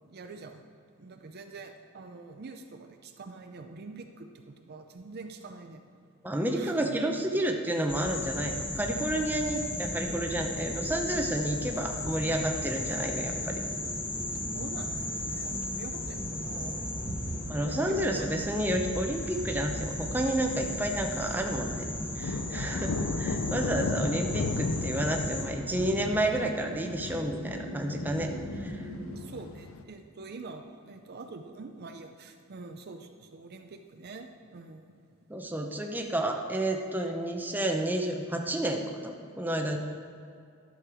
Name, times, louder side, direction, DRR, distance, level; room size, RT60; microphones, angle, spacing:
voice 1, 0.1-0.7 1.0-5.8 6.5-7.0 14.3-16.9 17.2-18.4 22.6-23.0 29.2-34.9, right 3 dB, 50° right, 5 dB, 0.5 m, -45 dB
voice 2, 6.2-13.6 17.5-21.8 22.2-28.9 35.3-39.8, right 1 dB, 10° right, 2 dB, 0.7 m, -30 dB
sound 1, 7.9-25.4, left 1 dB, 25° left, 1.4 m, -35 dB
sound 2, 11.6-29.8, left 3 dB, 65° left, 0.5 m, -38 dB
sound 3, 22.0-29.2, equal, 40° left, 2.2 m, -44 dB
12.0 x 6.5 x 4.9 m, 2.4 s
head